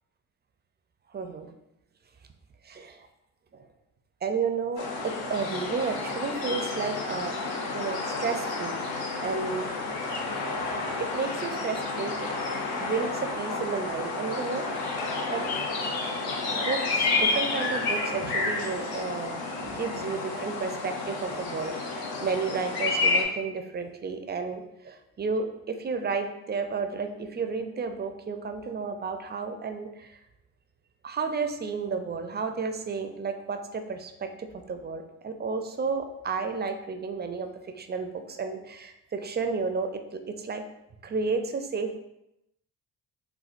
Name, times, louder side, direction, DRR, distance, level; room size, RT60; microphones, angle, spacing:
voice 1, 1.1-1.5 2.6-3.1 3.5-3.6 4.2-7.4 7.7-9.7 11.0-12.3 12.8-15.4 16.5-30.2 31.0-40.6 41.0-42.0, right 4 dB, 25° right, 6 dB, 0.4 m, -32 dB
sound 1, 4.8-23.2, left 3 dB, 70° left, 0.7 m, -30 dB
4.3 x 2.2 x 2.5 m, 0.85 s
supercardioid pair, 55°, 39 cm